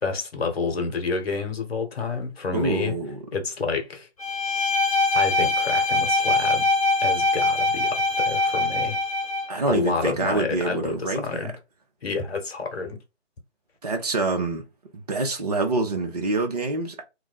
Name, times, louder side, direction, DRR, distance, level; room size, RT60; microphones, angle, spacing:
voice 1, 0.0-3.0 3.3-4.1 5.1-6.7 7.0-9.0 9.7-11.5 12.0-13.0, left 4 dB, 55° left, 1.1 m, -29 dB
voice 2, 2.5-3.2 9.5-11.5 13.8-14.7 14.9-17.0, right 3 dB, 35° right, 0.6 m, -26 dB
Bowed string instrument, 4.2-9.6, left 2 dB, 30° left, 0.7 m, -23 dB
2.4 x 2.1 x 3.8 m
figure-of-eight pair, 145°, 36 cm